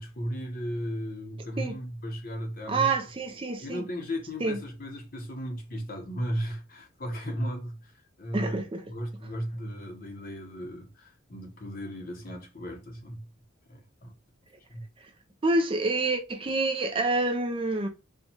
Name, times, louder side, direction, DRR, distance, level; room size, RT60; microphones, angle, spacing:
voice 1, 0.0-2.9 3.6-8.6 8.9-13.3 13.7-14.1 14.7-14.8, equal, 45° left, 0.8 m, -35 dB
voice 2, 2.7-3.8 4.4-4.6 8.3-8.8 15.4-17.9, right 3 dB, 25° right, 0.5 m, -27 dB
4.3 x 2.3 x 2.7 m
head